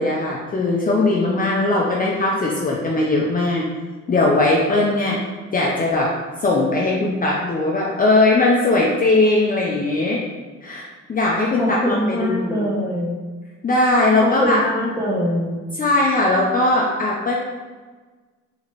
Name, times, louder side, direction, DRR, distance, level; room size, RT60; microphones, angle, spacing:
voice 1, 0.0-3.6 4.1-5.2 5.5-6.1 6.4-10.2 10.6-12.7 13.6-14.6 15.8-17.3, left 2 dB, 30° left, -3 dB, 0.5 m, -19 dB
voice 2, 11.6-13.2 14.2-15.6, left 1 dB, 10° right, -5 dB, 1.1 m, -23 dB
4.0 x 2.9 x 3.0 m, 1.4 s
cardioid pair, 90°, 30 cm